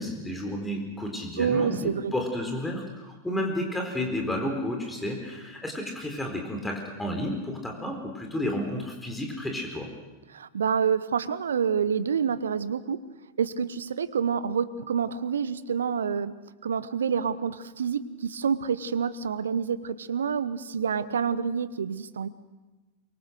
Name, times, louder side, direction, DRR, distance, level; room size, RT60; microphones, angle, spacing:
voice 1, 0.0-9.9, left 1 dB, 5° left, 2 dB, 4.2 m, -31 dB
voice 2, 1.4-2.1 10.3-13.0 13.4-16.3 16.6-22.3, right 7 dB, 65° right, 17 dB, 1.0 m, -28 dB
24.0 x 23.5 x 6.5 m, 1.2 s
figure-of-eight pair, 90°, 0 cm